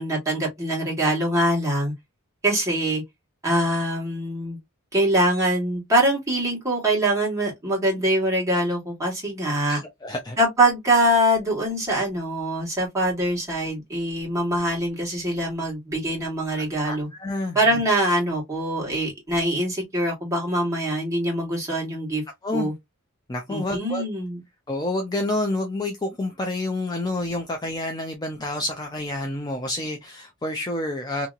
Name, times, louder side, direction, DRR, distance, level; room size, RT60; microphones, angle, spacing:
voice 1, 0.0-1.9 2.4-3.0 3.4-4.6 4.9-9.8 10.4-17.1 17.5-22.2 22.5-22.7 23.5-24.4, right 1 dB, 15° right, 1.4 m, -23 dB
voice 2, 9.7-10.4 16.6-17.8 22.4-22.7 23.3-24.0 24.7-31.3, left 2 dB, 20° left, 0.4 m, -29 dB
2.8 x 2.7 x 2.4 m
head